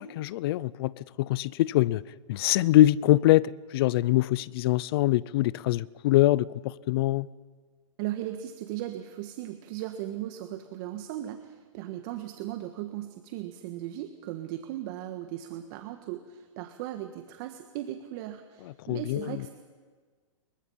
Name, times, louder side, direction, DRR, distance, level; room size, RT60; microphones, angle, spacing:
voice 1, 0.0-2.0 2.3-7.3 18.9-19.4, left 15 dB, 45° left, 0.6 m, -24 dB
voice 2, 8.0-19.5, right 13 dB, 40° right, 1.5 m, -37 dB
27.5 x 23.0 x 5.7 m
hypercardioid pair, 140°, 17 cm